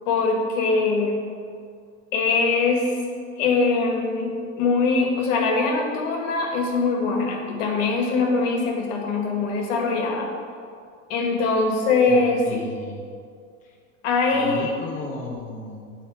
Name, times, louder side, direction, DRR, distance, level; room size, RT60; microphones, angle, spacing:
voice 1, 0.1-1.2 2.1-2.9 3.4-10.3 11.1-12.6 14.0-14.7, left 4 dB, 70° left, 1 dB, 1.9 m, -22 dB
voice 2, 12.0-13.1 13.6-13.8 14.3-15.9, left 2 dB, 20° left, -3 dB, 1.2 m, -34 dB
7.1 x 5.9 x 5.8 m, 2.2 s
supercardioid pair, 120°, 39 cm